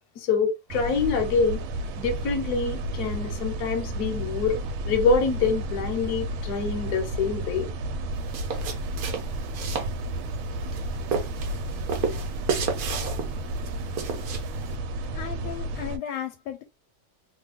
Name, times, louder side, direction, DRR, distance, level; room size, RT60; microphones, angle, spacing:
voice 1, 0.2-1.6 2.0-4.6 4.9-7.7, left 4 dB, 60° left, 1.1 m, -25 dB
sound 1, 0.7-16.0, right 1 dB, 85° right, 1.4 m, -32 dB
sound 2, 8.1-14.8, right 6 dB, 65° right, 1.0 m, -33 dB
voice 2, 15.1-16.6, left 9 dB, 85° left, 1.4 m, -35 dB
3.2 x 2.3 x 3.4 m
omnidirectional pair, 2.2 m